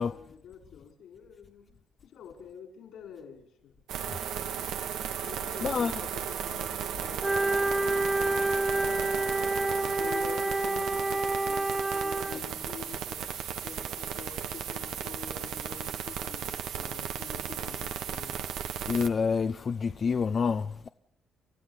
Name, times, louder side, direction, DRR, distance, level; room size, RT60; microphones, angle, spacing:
voice 1, 0.0-1.7 2.0-3.7 5.2-6.7 7.0-9.4 9.8-13.3 13.6-18.4, left 7 dB, 80° left, 5.7 m, -47 dB
sound 1, 3.9-19.1, right 9 dB, 80° right, 1.4 m, -35 dB
voice 2, 5.6-5.9 18.9-20.9, left 5 dB, 45° left, 0.8 m, -28 dB
Wind instrument woodwind instrument, 7.2-12.4, right 2 dB, 15° right, 1.1 m, -28 dB
29.5 x 12.5 x 8.3 m
cardioid pair, 90°, 0 cm